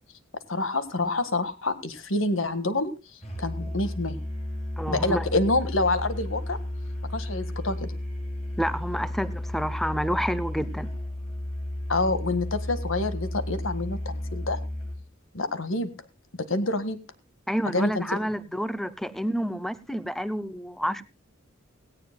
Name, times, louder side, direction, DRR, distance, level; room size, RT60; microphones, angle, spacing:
voice 1, 0.5-2.9 3.4-4.2 4.9-6.6 7.1-7.9 11.9-14.6 15.3-15.9 16.5-17.0 17.7-18.0, left 2 dB, 75° left, 11 dB, 1.7 m, -27 dB
Musical instrument, 3.2-15.1, left 1 dB, 30° left, 6.3 m, -33 dB
voice 2, 4.8-5.3 8.6-10.9 17.5-21.0, equal, ahead, 16 dB, 0.6 m, -29 dB
17.5 x 17.0 x 2.2 m, 0.27 s
head